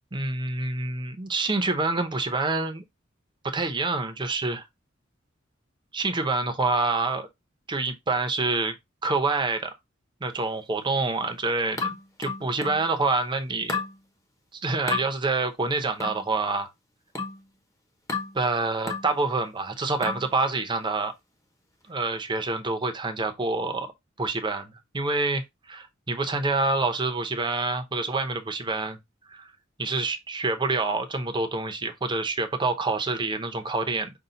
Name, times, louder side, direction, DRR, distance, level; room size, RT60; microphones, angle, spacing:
voice 1, 0.1-2.8 3.4-4.7 5.9-7.3 7.7-8.7 9.0-9.7 10.2-13.8 14.6-16.7 18.3-21.1 21.9-23.9 24.2-29.0 29.3-29.5 29.8-34.1, right 3 dB, 25° right, 0.7 m, -27 dB
sound 1, 11.8-12.9 13.7-14.0 14.9-15.1 16.0-16.3 17.1-17.4 18.1-18.4 18.9-19.1 20.0-20.3, left 4 dB, 15° left, 0.9 m, -31 dB
5.6 x 2.3 x 3.9 m
head